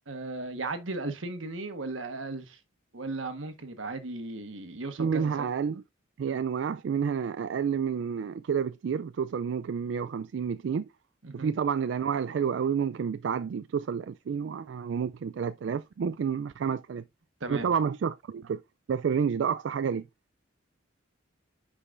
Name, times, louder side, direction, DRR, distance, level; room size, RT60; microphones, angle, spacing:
voice 1, 0.1-2.6 2.9-5.5 6.3-6.4 11.2-11.5 17.4-17.7, right 2 dB, 90° right, 1.3 m, -36 dB
voice 2, 5.0-5.8 6.2-10.9 11.3-17.0 17.5-18.6 18.9-20.0, right 7 dB, 70° right, 0.3 m, -29 dB
9.8 x 5.0 x 2.5 m
head